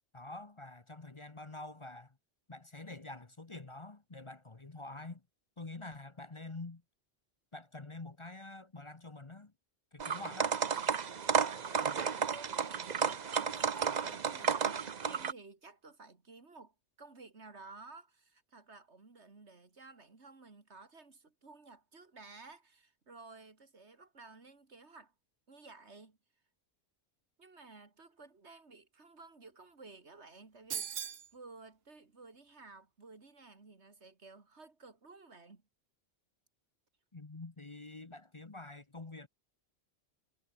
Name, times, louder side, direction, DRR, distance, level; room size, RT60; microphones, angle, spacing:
voice 1, 0.1-2.2 2.5-5.2 5.6-6.8 7.5-9.5 9.9-10.6 37.1-39.3, left 2 dB, 30° left, 1.1 m, -47 dB
sound 1, 10.0-15.3, right 6 dB, 45° right, 0.9 m, -32 dB
voice 2, 11.7-25.1 25.5-26.2 27.4-35.6, right 3 dB, 80° right, 3.0 m, -55 dB
sound 2, 30.7-31.3, right 8 dB, 65° right, 1.2 m, -38 dB
omnidirectional pair, 1.1 m